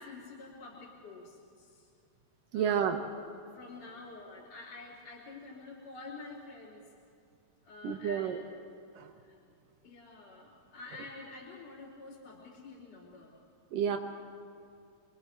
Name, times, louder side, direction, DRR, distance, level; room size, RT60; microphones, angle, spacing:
voice 1, 0.0-1.9 2.5-2.9 3.5-6.9 7.6-8.4 9.3-9.4 9.8-13.3, left 3 dB, 45° left, -8 dB, 3.9 m, -48 dB
voice 2, 2.5-3.0 7.8-8.4 8.9-9.1 13.7-14.0, right 8 dB, 70° right, 5 dB, 2.4 m, -30 dB
27.0 x 22.5 x 4.6 m, 2.4 s
omnidirectional pair, 4.4 m